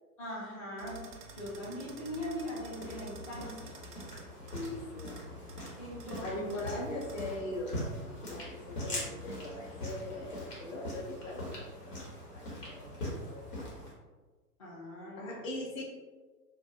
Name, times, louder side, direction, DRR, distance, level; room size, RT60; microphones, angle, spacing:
voice 1, 0.2-1.0 1.3-3.7 5.8-6.3 8.2-8.3 14.6-15.4, equal, 25° left, -9 dB, 0.4 m, -40 dB
sound 1, 0.8-7.4, right 3 dB, 80° right, 0.6 m, -51 dB
sound 2, 2.4-13.9, left 1 dB, 80° left, 1.1 m, -42 dB
voice 2, 4.5-5.2 6.2-8.0 8.2-12.0 12.3-13.0 13.2-13.5 15.2-15.8, left 1 dB, 55° left, -1 dB, 0.8 m, -40 dB
2.3 x 2.1 x 2.6 m, 1.3 s
figure-of-eight pair, 105°, 46 cm